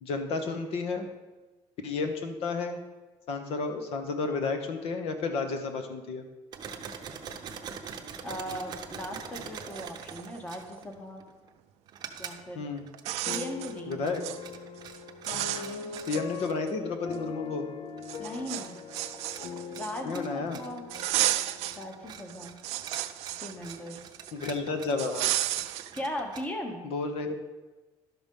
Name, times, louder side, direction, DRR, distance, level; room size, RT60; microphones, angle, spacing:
voice 1, 0.0-1.1 1.8-2.8 3.3-6.2 12.5-12.8 13.9-14.2 15.5-15.6 16.1-17.7 20.0-20.6 24.3-25.3 26.8-27.3, left 4 dB, 65° left, 6 dB, 1.1 m, -32 dB
sound 1, 6.5-11.5 11.9-12.5 12.8-17.2 18.0-26.4, right 7 dB, 40° right, 0.7 m, -45 dB
voice 2, 8.2-11.2 12.2-12.6 13.3-14.0 15.3-16.3 18.2-18.9 19.7-20.9 21.8-22.6 23.4-24.0 25.9-26.9, equal, 15° left, 4 dB, 1.0 m, -38 dB
sound 2, 9.4-9.5 9.7-10.8 12.3-12.4 12.9-13.7 14.1-14.4 14.8-15.0 15.3-16.7 17.1-17.2 18.0-20.2 20.9-21.8 22.2-24.3 25.0-25.9, right 15 dB, 80° right, 0.5 m, -33 dB
sound 3, 13.3-22.4, left 6 dB, 45° left, 0.4 m, -41 dB
11.5 x 6.1 x 5.3 m, 1.2 s
cardioid pair, 170°, 11 cm